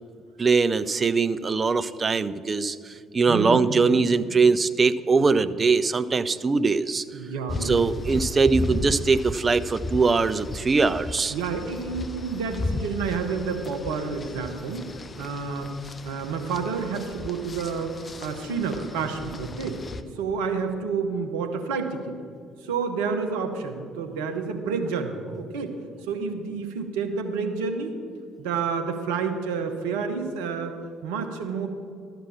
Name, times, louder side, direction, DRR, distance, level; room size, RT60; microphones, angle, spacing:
voice 1, 0.4-7.0 7.6-11.3, right 4 dB, 30° right, 13 dB, 0.5 m, -22 dB
voice 2, 3.3-3.9 5.1-5.3 7.1-7.9 11.3-14.9 15.2-15.7 16.0-17.9 18.2-19.8 20.2-22.2 22.6-25.7 26.1-27.9 28.4-31.7, right 5 dB, 70° right, 5 dB, 1.0 m, -29 dB
sound 1, 7.5-20.0, left 2 dB, 30° left, 0.6 m, -35 dB
12.5 x 5.9 x 7.2 m, 2.4 s
figure-of-eight pair, 50°, 0 cm